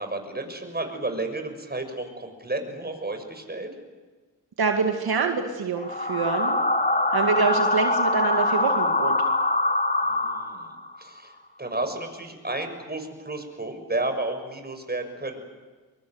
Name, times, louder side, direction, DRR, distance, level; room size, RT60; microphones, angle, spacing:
voice 1, 0.0-3.7 10.0-15.5, right 2 dB, 25° right, 6 dB, 6.6 m, -32 dB
voice 2, 4.6-6.6 7.1-9.2, right 5 dB, 70° right, 4 dB, 2.3 m, -25 dB
sound 1, 5.8-10.9, left 2 dB, 20° left, 3.5 m, -24 dB
23.5 x 23.0 x 9.6 m, 1.3 s
cardioid pair, 50°, 38 cm